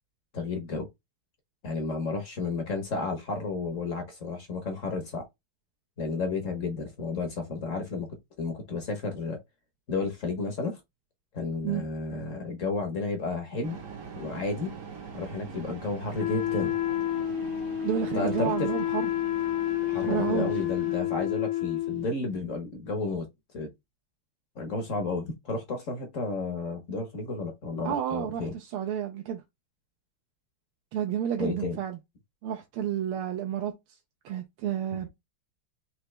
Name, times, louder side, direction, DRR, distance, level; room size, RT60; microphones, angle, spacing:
voice 1, 0.3-0.9 1.6-5.2 6.0-8.1 8.4-9.4 9.9-10.8 11.3-13.8 14.1-14.7 15.1-16.7 18.1-18.7 19.9-23.3 23.5-23.7 24.6-28.5 31.4-31.8, left 3 dB, 50° left, 1.1 m, -32 dB
sound 1, 13.6-21.0, right 6 dB, 55° right, 0.9 m, -43 dB
Wind instrument woodwind instrument, 16.2-22.1, left 12 dB, 75° left, 1.5 m, -29 dB
voice 2, 17.8-19.1 19.9-20.5 27.8-29.4 30.9-32.0 32.4-33.7 34.2-35.1, right 9 dB, 85° right, 1.6 m, -30 dB
4.5 x 2.9 x 3.2 m
omnidirectional pair, 2.4 m